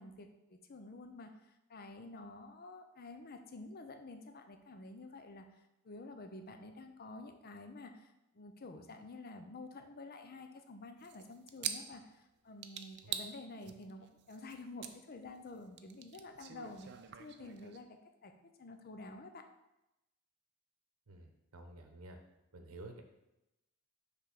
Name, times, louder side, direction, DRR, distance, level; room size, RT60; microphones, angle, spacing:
voice 1, 0.0-1.3 1.7-5.5 5.8-16.9 17.2-17.9 18.2-19.5, left 2 dB, 45° left, 7 dB, 0.6 m, -50 dB
sound 1, 11.0-12.2 12.6-13.3 13.6-14.9 15.2-17.8, right 9 dB, 50° right, 0.5 m, -43 dB
voice 2, 21.1-22.2 22.5-23.0, right 2 dB, 75° right, 5 dB, 0.8 m, -51 dB
5.9 x 3.5 x 5.8 m, 0.93 s
head